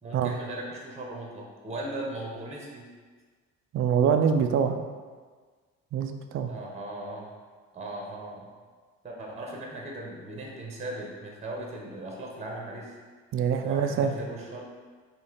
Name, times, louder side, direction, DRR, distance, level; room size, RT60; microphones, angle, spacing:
voice 1, 0.0-2.9 6.5-7.3 7.7-8.5 9.0-12.9 13.6-14.6, right 1 dB, 15° right, -1 dB, 0.8 m, -38 dB
voice 2, 3.7-4.8 5.9-6.5 13.3-14.1, right 7 dB, 35° right, 6 dB, 0.4 m, -24 dB
4.3 x 2.8 x 3.7 m, 1.5 s
figure-of-eight pair, 50°, 41 cm